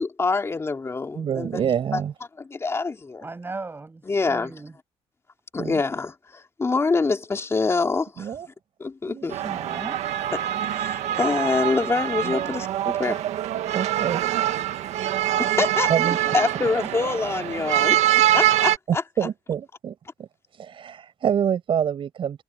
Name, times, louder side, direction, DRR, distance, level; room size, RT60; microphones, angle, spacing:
voice 1, 0.0-1.5 1.9-2.0 2.4-3.3 4.1-4.5 5.5-8.3 8.8-9.4 10.3-13.2 15.4-15.9 16.3-18.0 18.3-19.0, left 4 dB, 25° left, 3.0 m, -25 dB
voice 2, 1.1-2.1 5.6-5.8 8.2-8.5 9.1-9.7 12.3-12.5 13.7-14.6 15.9-16.2 18.3-18.4 18.9-22.4, right 8 dB, 50° right, 6.4 m, -27 dB
voice 3, 3.2-4.7 9.2-10.0 16.0-16.7, right 3 dB, 20° right, 6.8 m, -37 dB
sound 1, 9.3-18.8, right 12 dB, 75° right, 1.7 m, -24 dB
cardioid pair, 115°, 12 cm